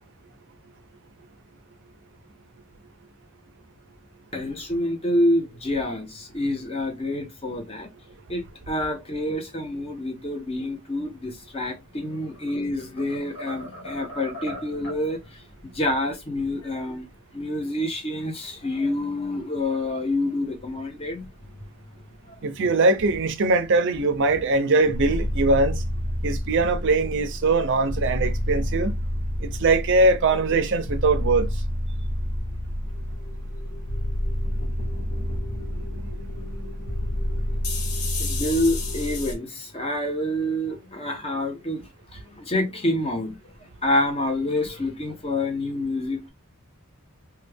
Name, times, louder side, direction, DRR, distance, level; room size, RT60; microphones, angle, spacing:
voice 1, 4.3-7.9 8.3-15.2 15.6-17.1 17.3-21.3 22.3-22.4 38.2-41.8 42.1-43.3 43.8-46.3, left 1 dB, 25° left, 0.8 m, -27 dB
sound 1, 12.1-12.6 13.0-15.1, equal, 60° left, 1.8 m, -39 dB
voice 2, 22.4-25.8 26.2-28.9 29.4-31.5, right 3 dB, 55° right, 0.6 m, -21 dB
sound 2, 24.9-39.3, left 1 dB, 80° left, 1.0 m, -29 dB
3.1 x 2.3 x 3.3 m
head